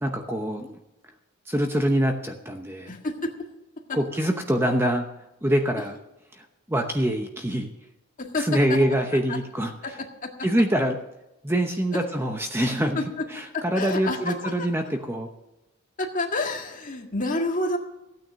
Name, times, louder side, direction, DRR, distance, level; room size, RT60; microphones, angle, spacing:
voice 1, 0.0-0.7 1.5-2.9 3.9-5.1 5.4-5.9 6.7-7.7 8.5-9.7 10.4-11.0 11.4-13.0 13.6-15.3, equal, 10° right, 4 dB, 0.9 m, -24 dB
voice 2, 2.8-3.5 3.9-4.0 8.2-8.8 9.3-9.4 9.8-10.5 11.9-12.0 13.0-13.3 13.5-14.7 16.0-17.8, left 2 dB, 35° left, 2 dB, 1.9 m, -29 dB
15.5 x 9.3 x 6.3 m, 0.94 s
head